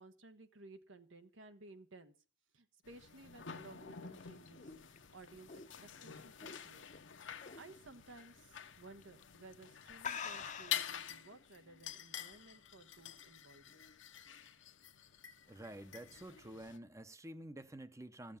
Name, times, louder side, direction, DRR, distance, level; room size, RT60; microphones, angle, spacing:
voice 1, 0.0-2.2 2.5-6.9 7.6-13.8, right 3 dB, 75° right, 1.3 m, -57 dB
sound 1, 2.8-16.8, left 10 dB, 70° left, 0.9 m, -48 dB
sound 2, 3.9-7.0 7.4-7.7 8.1-8.2 9.0-9.2 9.5-9.6 10.0-11.0, left 6 dB, 40° left, 0.7 m, -45 dB
voice 2, 15.5-18.4, right 1 dB, 15° right, 0.7 m, -49 dB
14.0 x 7.3 x 7.1 m
head